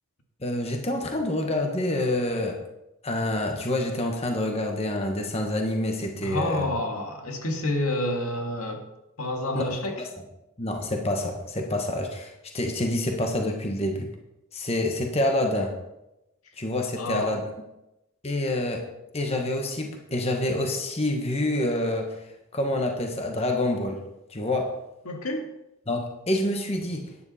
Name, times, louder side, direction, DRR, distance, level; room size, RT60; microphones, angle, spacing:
voice 1, 0.4-2.6 3.0-6.6 9.5-9.7 10.6-14.1 14.5-15.8 16.6-17.4 18.2-18.8 19.1-22.2 22.5-24.0 24.3-24.7 25.9-27.1, left 1 dB, 30° left, 3 dB, 1.2 m, -27 dB
voice 2, 6.2-8.9 9.2-10.1 17.0-17.4 25.1-25.5, left 1 dB, 85° left, 3 dB, 1.9 m, -29 dB
12.0 x 9.8 x 4.2 m, 0.91 s
head